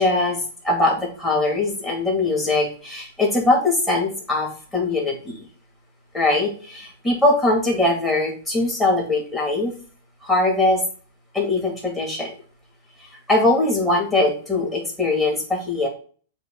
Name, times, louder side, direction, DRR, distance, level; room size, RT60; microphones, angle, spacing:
voice 1, 0.0-5.4 6.1-9.7 10.2-10.8 11.3-12.3 13.3-15.9, left 2 dB, 10° left, -3 dB, 2.4 m, -21 dB
7.6 x 2.9 x 4.6 m, 0.40 s
hypercardioid pair, 145°, 0 cm